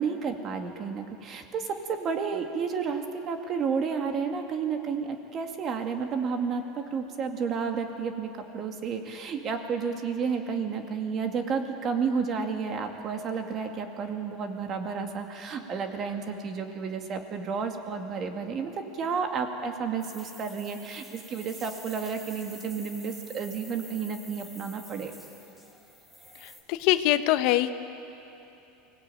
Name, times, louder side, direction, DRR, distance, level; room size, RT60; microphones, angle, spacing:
voice 1, 0.0-25.1, right 5 dB, 35° right, 4 dB, 2.3 m, -31 dB
sound 1, 20.0-26.6, equal, 10° right, 3.8 m, -48 dB
voice 2, 26.4-27.7, left 14 dB, 60° left, 11 dB, 0.9 m, -24 dB
24.0 x 17.5 x 9.2 m, 2.9 s
supercardioid pair, 125°, 0 cm